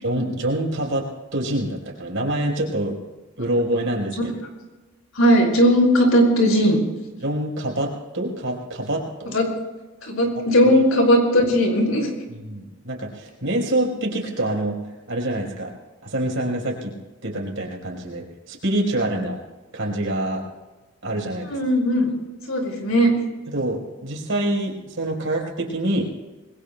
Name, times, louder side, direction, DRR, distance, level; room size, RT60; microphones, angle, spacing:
voice 1, 0.0-3.0 3.4-4.3 7.2-9.4 10.6-10.7 12.3-14.8 15.1-15.7 16.0-16.9 17.2-19.4 19.7-20.5 21.0-21.6 23.5-26.1, right 1 dB, 70° right, -1 dB, 4.4 m, -26 dB
voice 2, 5.1-6.8 9.3-9.4 10.0-12.1 21.5-22.1 22.5-23.1, equal, 85° left, 1 dB, 5.6 m, -17 dB
27.0 x 21.5 x 2.3 m, 1.2 s
head